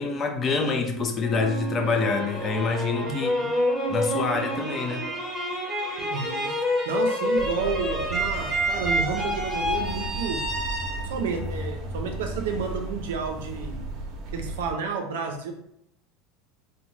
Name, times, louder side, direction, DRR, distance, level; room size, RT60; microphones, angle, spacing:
voice 1, 0.0-3.4 3.9-5.1, left 4 dB, 30° left, 4 dB, 0.4 m, -26 dB
sound 1, 1.2-12.2, equal, 10° right, 0.9 m, -28 dB
voice 2, 3.0-3.5 6.0-6.6 6.9-10.4 11.1-13.8 14.3-15.5, right 5 dB, 85° right, 4 dB, 0.5 m, -31 dB
sound 2, 7.3-14.7, right 1 dB, 50° right, 0.7 m, -35 dB
2.6 x 2.1 x 3.1 m, 0.74 s
supercardioid pair, 120°, 0 cm